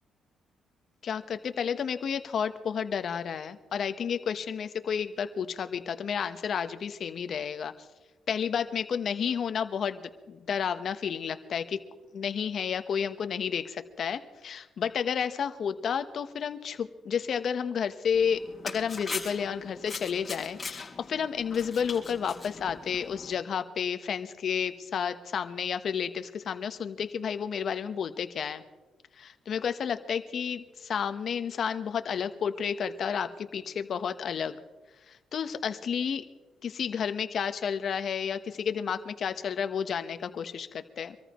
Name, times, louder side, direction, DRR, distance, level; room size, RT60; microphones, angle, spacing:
voice 1, 1.0-7.7 8.3-11.8 12.1-28.6 29.2-34.6 35.1-36.2 36.6-41.2, left 7 dB, 60° left, 10 dB, 1.1 m, -31 dB
sound 1, 18.1-23.3, left 4 dB, 30° left, 4.1 m, -41 dB
25.5 x 14.0 x 3.1 m, 1.2 s
cardioid pair, 90°, 0 cm